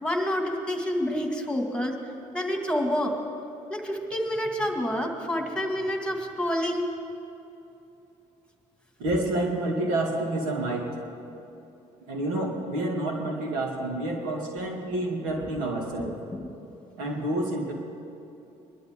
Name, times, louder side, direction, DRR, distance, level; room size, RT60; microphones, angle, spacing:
voice 1, 0.0-3.1 3.7-6.9 16.0-16.5, equal, 5° left, 3 dB, 2.3 m, -28 dB
voice 2, 9.0-10.9 12.1-16.2 17.0-17.7, right 1 dB, 85° right, 1 dB, 2.3 m, -28 dB
22.5 x 12.0 x 3.8 m, 2.8 s
supercardioid pair, 65°, 15 cm